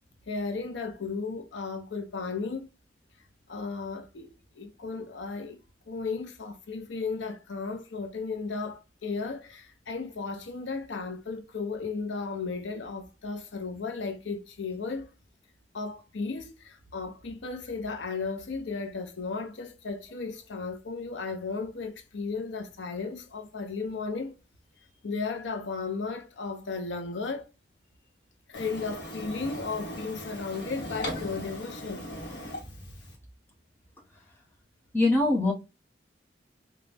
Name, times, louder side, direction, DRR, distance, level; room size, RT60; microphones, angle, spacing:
voice 1, 0.3-2.7 3.5-4.3 4.5-5.6 5.9-15.1 15.7-24.3 25.0-27.5 28.5-32.1, left 4 dB, 85° left, 0.6 m, -35 dB
Printer, 28.5-33.1, equal, 70° left, 1.1 m, -38 dB
voice 2, 34.9-35.5, left 2 dB, 10° left, 0.9 m, -22 dB
4.0 x 2.3 x 3.3 m
head